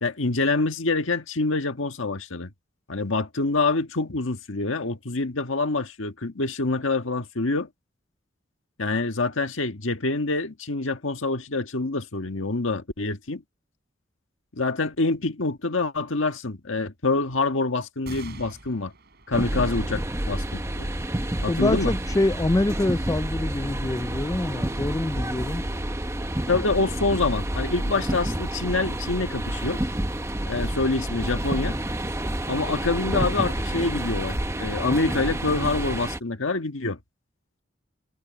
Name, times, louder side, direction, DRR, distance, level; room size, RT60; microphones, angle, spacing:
voice 1, 0.0-2.5 2.9-7.7 8.8-13.4 14.5-18.9 19.3-20.9 21.4-21.9 26.5-29.8 30.5-31.8 32.5-37.0, left 3 dB, 85° left, 1.6 m, -26 dB
sound 1, 18.0-24.9 25.5-25.6 26.8-27.3, right 2 dB, 55° right, 6.0 m, -48 dB
sound 2, 19.3-36.2, right 1 dB, 15° right, 0.9 m, -29 dB
voice 2, 21.5-25.6, left 2 dB, 15° left, 0.4 m, -25 dB
head